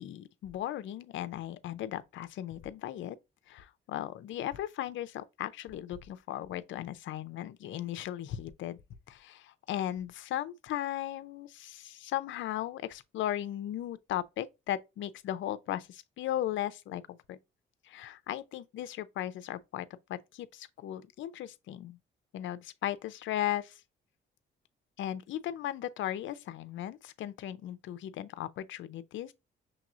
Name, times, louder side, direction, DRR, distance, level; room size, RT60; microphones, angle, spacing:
voice 1, 0.0-3.2 3.5-8.8 9.1-17.4 17.8-22.0 22.3-23.8 25.0-29.3, left 12 dB, 70° left, 0.5 m, -37 dB
6.1 x 2.9 x 2.4 m
cardioid pair, 90°, 20 cm